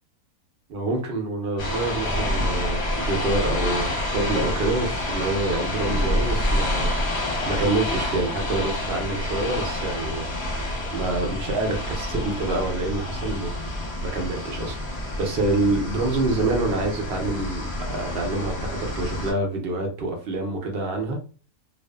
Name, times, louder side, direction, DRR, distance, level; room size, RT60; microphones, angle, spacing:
voice 1, 0.7-7.0 7.5-10.4 10.9-13.5 14.1-17.6 17.9-21.2, right 2 dB, 70° right, 0.5 m, -27 dB
sound 1, 1.6-19.3, left 1 dB, 50° left, 0.9 m, -28 dB
2.4 x 2.4 x 2.3 m
omnidirectional pair, 1.6 m